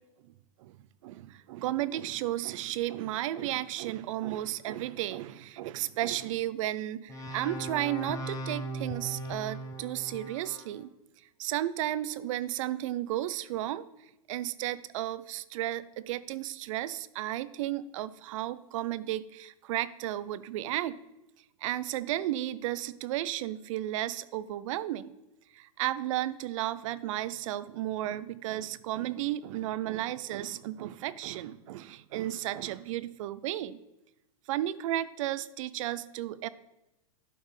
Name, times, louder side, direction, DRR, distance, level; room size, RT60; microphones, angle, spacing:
voice 1, 1.0-10.9 11.4-13.9 14.3-21.0 21.6-25.1 25.5-33.8 34.5-36.5, right 14 dB, 60° right, 17 dB, 0.5 m, -33 dB
sound 1, 7.1-10.7, right 1 dB, 15° left, 0.9 m, -38 dB
12.0 x 5.3 x 3.2 m, 0.95 s
hypercardioid pair, 120°, 19 cm